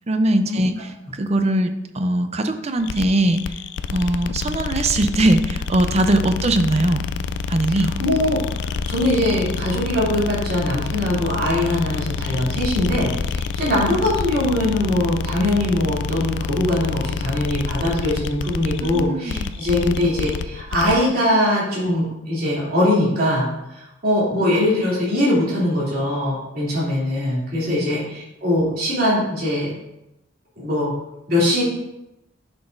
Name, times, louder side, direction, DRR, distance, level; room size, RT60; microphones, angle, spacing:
voice 1, 0.1-3.5 3.9-7.1 7.5-7.9 18.8-19.6 27.7-27.9, right 1 dB, 35° right, 8 dB, 0.5 m, -21 dB
sound 1, 2.8-21.1, left 5 dB, 60° left, 0.3 m, -28 dB
voice 2, 7.7-23.5 23.7-29.7 30.6-30.9 31.3-31.6, left 1 dB, 50° right, -7 dB, 2.9 m, -21 dB
10.5 x 6.0 x 2.6 m, 0.91 s
head